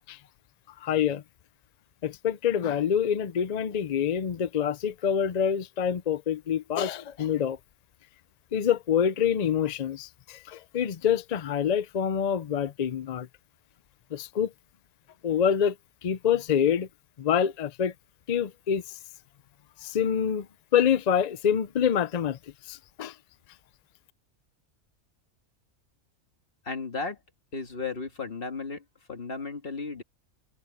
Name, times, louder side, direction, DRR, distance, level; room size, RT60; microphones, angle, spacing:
voice 1, 0.8-1.2 2.0-7.6 8.5-13.3 14.1-14.5 15.2-15.8 16.0-16.9 17.2-17.9 18.3-19.0 19.8-20.5 20.7-22.4 22.7-23.2, left 8 dB, 60° left, 0.4 m, -26 dB
voice 2, 26.6-27.2 27.5-30.0, left 4 dB, 40° left, 2.1 m, -35 dB
omnidirectional pair, 1.4 m